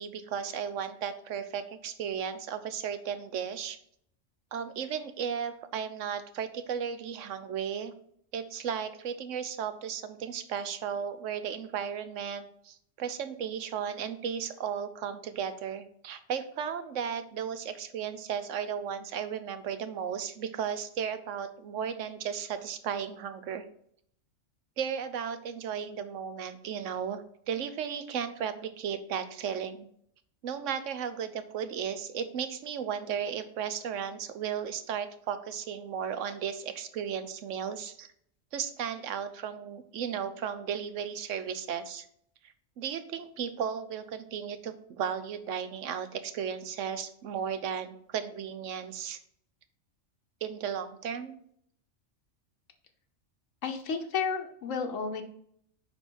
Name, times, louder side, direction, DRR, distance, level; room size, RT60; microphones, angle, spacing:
voice 1, 0.0-3.8 4.5-7.9 8.3-23.6 24.8-29.9 30.4-38.1 38.5-42.1 42.8-49.2 50.4-51.3, right 8 dB, 80° right, 11 dB, 1.1 m, -35 dB
voice 2, 53.6-55.2, left 5 dB, 85° left, 5 dB, 1.3 m, -32 dB
9.3 x 3.6 x 4.6 m, 0.68 s
omnidirectional pair, 1.3 m